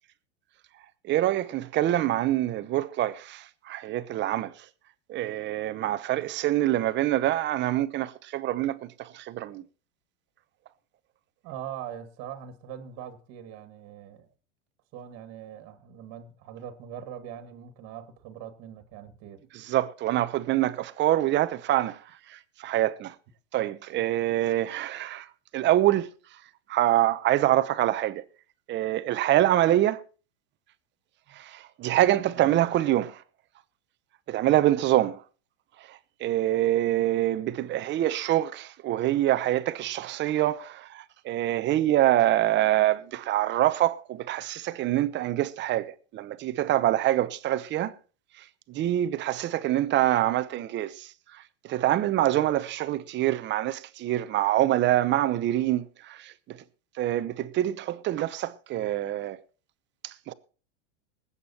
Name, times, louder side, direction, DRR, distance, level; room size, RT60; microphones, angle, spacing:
voice 1, 1.0-4.5 5.1-9.6 19.5-22.0 22.3-23.1 23.5-25.3 25.5-26.1 26.7-28.2 28.7-30.0 31.3-33.2 34.3-35.2 35.9-47.9 48.7-56.6 57.0-59.4 60.0-60.3, right 14 dB, 30° right, 0.9 m, -25 dB
voice 2, 11.4-14.3 14.9-19.4 31.3-31.4 32.3-32.5, right 9 dB, 45° right, 2.0 m, -42 dB
20.0 x 8.4 x 4.3 m
supercardioid pair, 135°, 36 cm